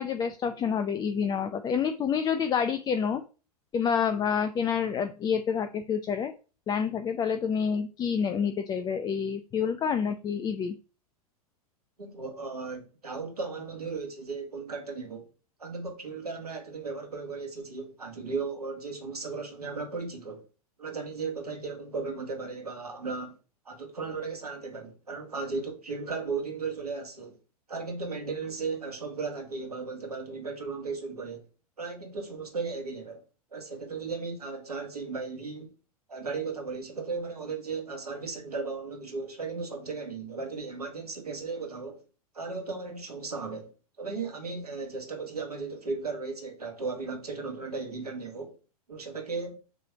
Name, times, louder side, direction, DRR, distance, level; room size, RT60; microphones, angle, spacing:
voice 1, 0.0-3.2 3.7-6.3 6.7-10.7, left 7 dB, 20° left, 0.6 m, -28 dB
voice 2, 12.0-15.3 15.6-20.4 20.8-23.4 23.7-27.4 27.7-31.4 31.8-33.2 33.5-35.7 36.1-42.0 42.3-43.7 44.0-48.6 48.9-49.6, right 4 dB, 80° right, 2.1 m, -36 dB
6.8 x 3.3 x 6.0 m
figure-of-eight pair, 95°, 19 cm